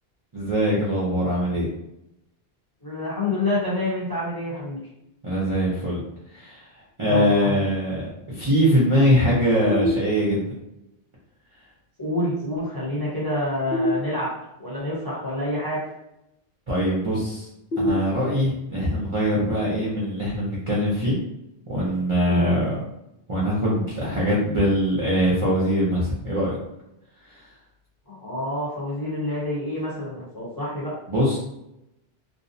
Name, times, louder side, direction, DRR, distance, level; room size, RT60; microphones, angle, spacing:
voice 1, 0.3-1.7 5.2-6.0 6.3-6.7 7.0-10.5 16.7-17.5 17.8-21.2 21.7-22.7 23.3-26.6 31.1-31.4, equal, 35° right, -8 dB, 0.6 m, -22 dB
voice 2, 2.8-4.8 7.1-7.6 12.0-14.3 14.6-15.8 22.3-22.5 28.1-30.9, left 1 dB, 25° left, -8 dB, 0.8 m, -27 dB
sound 1, 9.7-10.7 13.7-14.7 17.7-18.7, left 1 dB, 75° left, 0.9 m, -28 dB
2.6 x 2.0 x 2.6 m, 0.84 s
omnidirectional pair, 1.1 m